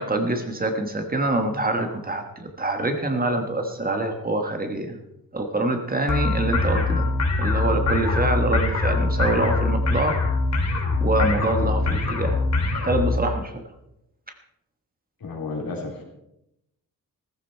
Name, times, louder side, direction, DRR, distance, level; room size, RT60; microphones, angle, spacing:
voice 1, 0.0-5.0 5.3-10.2 11.0-12.4 12.8-13.6, right 2 dB, 25° right, 5 dB, 1.4 m, -25 dB
sound 1, 6.1-13.2, left 3 dB, 50° left, 3.2 m, -23 dB
voice 2, 15.2-16.0, left 3 dB, 80° left, 0 dB, 3.8 m, -32 dB
15.5 x 14.5 x 4.5 m, 0.84 s
wide cardioid pair, 175°, 35 cm